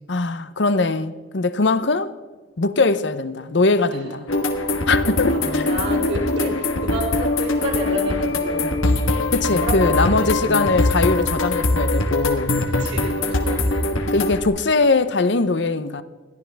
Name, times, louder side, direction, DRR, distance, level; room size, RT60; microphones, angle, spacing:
voice 1, 0.1-2.1 2.6-4.3 4.9-5.7 9.3-12.6 14.1-16.0, left 3 dB, 60° left, 0.7 m, -21 dB
sound 1, 4.3-14.5, left 2 dB, 85° left, 1.4 m, -22 dB
voice 2, 5.3-8.7 9.5-10.7 12.8-13.8, equal, 55° right, 3.4 m, -30 dB
21.0 x 14.5 x 3.4 m
head